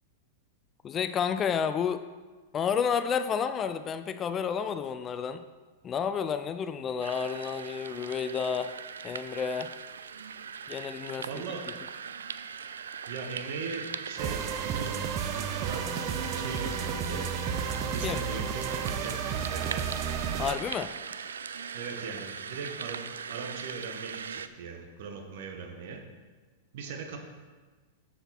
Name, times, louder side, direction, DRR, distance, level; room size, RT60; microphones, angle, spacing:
voice 1, 0.8-2.0 2.5-5.4 5.8-8.7 9.0-9.7 10.7-11.3 18.0-18.2 20.4-20.9, left 7 dB, 30° left, 11 dB, 0.4 m, -30 dB
sound 1, 7.0-24.5, right 6 dB, 80° right, 0.3 m, -40 dB
voice 2, 11.3-11.7 13.1-17.2 17.6-19.9 21.7-23.0 23.3-26.0 26.7-27.2, right 5 dB, 60° right, 3 dB, 1.4 m, -40 dB
sound 2, 14.2-20.6, right 7 dB, 40° right, 0.6 m, -32 dB
7.3 x 6.9 x 4.2 m, 1.4 s
hypercardioid pair, 105°, 0 cm